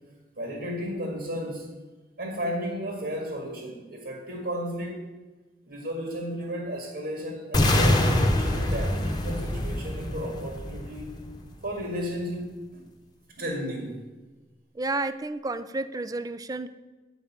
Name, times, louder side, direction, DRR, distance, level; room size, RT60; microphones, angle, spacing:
voice 1, 0.4-1.7 2.2-5.1 5.7-11.1 11.6-12.9 13.4-14.0, equal, 65° right, 1 dB, 1.9 m, -33 dB
sound 1, 7.5-11.6, left 1 dB, 25° left, 1.0 m, -25 dB
voice 2, 14.7-16.7, right 2 dB, 20° right, 13 dB, 0.4 m, -31 dB
9.9 x 5.4 x 7.3 m, 1.2 s
head